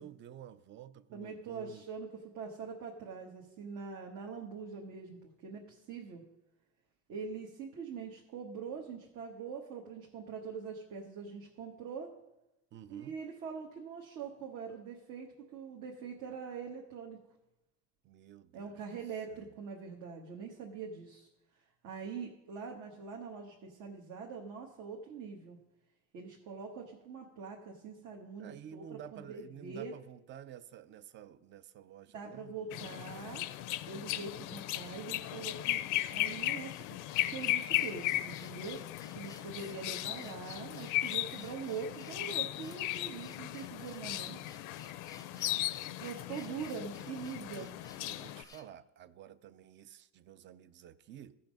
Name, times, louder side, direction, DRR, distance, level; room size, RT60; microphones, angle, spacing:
voice 1, 0.0-1.8 12.7-13.2 18.0-18.8 19.3-19.5 28.4-32.9 39.3-39.6 45.2-46.7 47.4-51.4, right 10 dB, 35° right, 0.5 m, -52 dB
voice 2, 1.1-6.2 7.1-12.1 12.9-17.2 18.5-21.3 21.8-25.6 26.1-29.9 32.1-33.5 33.9-35.8 36.1-36.9 37.2-38.8 39.1-44.4 46.0-47.7, right 5 dB, 65° right, 1.3 m, -43 dB
sound 1, 32.7-48.4, left 16 dB, 70° left, 0.5 m, -37 dB
sound 2, 36.6-48.8, left 4 dB, 10° left, 0.5 m, -58 dB
15.0 x 5.7 x 5.2 m
cardioid pair, 145°, 32 cm